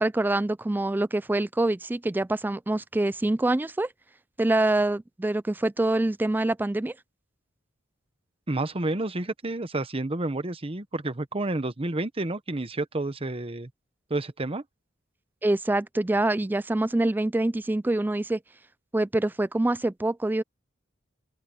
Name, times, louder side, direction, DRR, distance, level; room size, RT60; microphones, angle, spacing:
voice 1, 0.0-3.9 4.4-6.9 15.4-18.4 18.9-20.4, right 2 dB, 10° right, 0.3 m, -25 dB
voice 2, 8.5-13.7 14.1-14.6, right 2 dB, 30° right, 1.0 m, -30 dB
open air
head